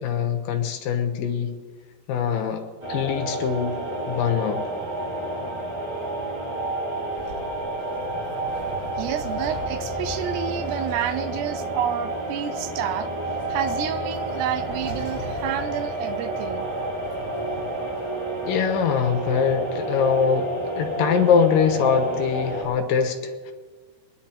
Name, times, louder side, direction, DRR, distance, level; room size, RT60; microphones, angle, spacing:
voice 1, 0.0-1.5 2.1-2.6 2.9-3.8 4.1-4.6 18.5-20.5 20.8-23.5, left 7 dB, 70° left, 5 dB, 2.2 m, -23 dB
sound 1, 2.8-22.6, right 2 dB, 30° right, 4.0 m, -30 dB
sound 2, 7.0-18.7, right 1 dB, 65° right, 6.8 m, -42 dB
voice 2, 9.0-13.1 13.5-16.7, right 10 dB, 80° right, 12 dB, 2.6 m, -29 dB
23.0 x 11.0 x 4.4 m, 1.5 s
omnidirectional pair, 5.1 m